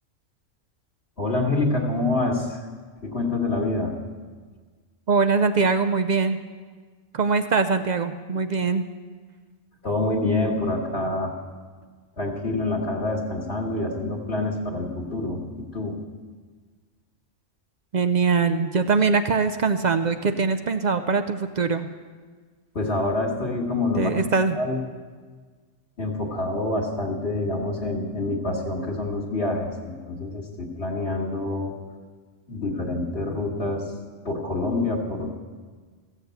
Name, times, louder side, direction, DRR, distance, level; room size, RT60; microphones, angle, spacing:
voice 1, 1.2-2.6 3.0-4.0 9.8-11.3 12.2-16.0 22.7-24.3 24.5-24.8 26.0-31.7 32.5-33.9 34.2-35.3, left 2 dB, 50° left, -3 dB, 1.7 m, -26 dB
voice 2, 5.1-6.4 7.1-8.8 17.9-21.9 24.0-24.6, right 4 dB, 65° right, 9 dB, 0.4 m, -22 dB
15.5 x 7.3 x 8.0 m, 1.5 s
omnidirectional pair, 1.4 m